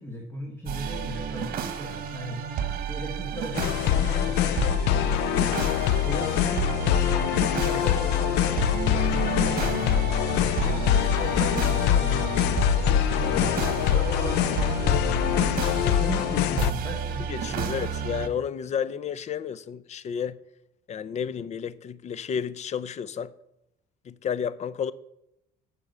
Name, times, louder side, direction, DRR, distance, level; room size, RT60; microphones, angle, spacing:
voice 1, 0.0-2.4 2.9-5.4 6.0-6.6 6.9-12.3 13.1-17.7 18.0-18.2, equal, 15° left, 1.8 m, -37 dB
sound 1, 0.7-18.3, right 8 dB, 60° right, 1.2 m, -32 dB
sound 2, 3.5-16.7, left 11 dB, 90° left, 0.5 m, -24 dB
sound 3, 6.9-16.3, right 5 dB, 35° right, 2.7 m, -40 dB
voice 2, 17.3-20.4 20.9-23.3 24.0-24.9, left 7 dB, 40° left, 0.5 m, -31 dB
8.6 x 6.8 x 6.8 m
cardioid pair, 110°, 17 cm